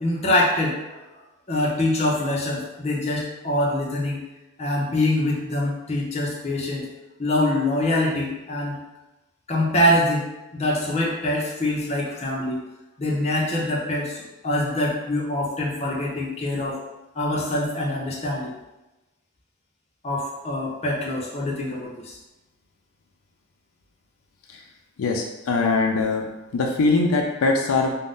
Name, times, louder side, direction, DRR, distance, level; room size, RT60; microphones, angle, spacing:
voice 1, 0.0-1.0 1.5-4.2 4.6-6.9 7.2-8.8 9.5-12.6 13.0-16.8 17.1-18.5 20.0-22.2, left 1 dB, 30° left, -4 dB, 0.5 m, -24 dB
voice 2, 25.0-27.9, left 3 dB, 80° left, 2 dB, 0.4 m, -22 dB
2.5 x 2.1 x 3.5 m, 1.0 s
head